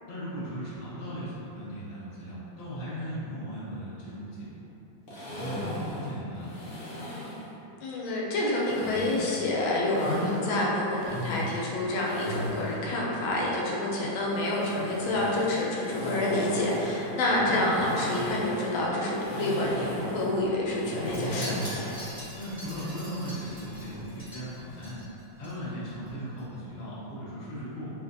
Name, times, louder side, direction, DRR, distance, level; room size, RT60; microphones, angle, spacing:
voice 1, 0.1-4.7 5.3-6.8 17.5-17.6 22.3-25.0 25.4-27.9, equal, 45° left, -10 dB, 0.5 m, -37 dB
sound 1, 5.1-7.5 8.6-10.4 10.8-12.8 14.2-22.2, equal, 60° left, 1.0 m, -37 dB
voice 2, 7.8-21.5, left 1 dB, 85° left, -4 dB, 1.4 m, -28 dB
Wind chime, 21.0-25.5 25.8-26.1 26.4-26.5, equal, 5° left, 0.9 m, -43 dB
3.2 x 3.1 x 2.6 m, 3.0 s
omnidirectional pair, 2.2 m